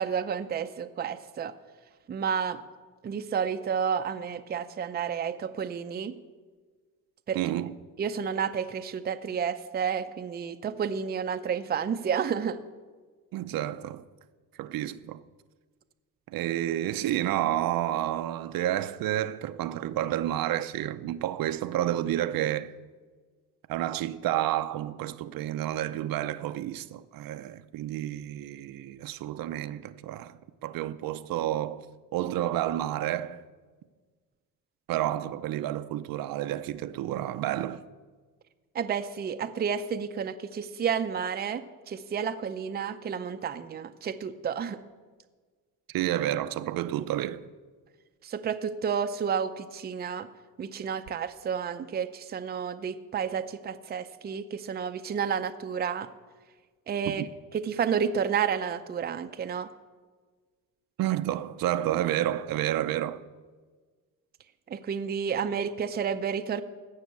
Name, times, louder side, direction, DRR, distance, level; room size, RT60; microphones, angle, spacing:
voice 1, 0.0-1.5 2.1-2.6 3.0-6.1 7.3-7.4 8.0-12.6 38.7-44.8 48.2-50.3 50.6-56.1 56.9-57.2 57.5-59.7 64.7-66.6, right 7 dB, 25° right, 0.6 m, -31 dB
voice 2, 7.3-7.8 13.3-14.0 14.6-15.2 16.3-22.7 23.7-30.4 30.6-31.9 32.1-33.4 34.9-37.8 45.9-47.4 57.1-57.3 61.0-63.2, right 12 dB, 65° right, 0.7 m, -30 dB
16.0 x 6.5 x 8.4 m
cardioid pair, 135°, 37 cm